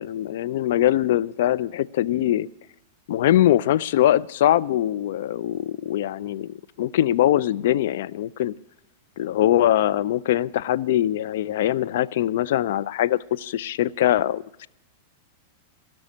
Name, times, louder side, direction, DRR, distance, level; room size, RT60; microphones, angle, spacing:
voice 1, 0.0-2.5 3.1-8.5 9.2-14.7, left 12 dB, 60° left, 16 dB, 0.4 m, -22 dB
16.5 x 6.2 x 9.7 m, 0.86 s
figure-of-eight pair, 95°, 0 cm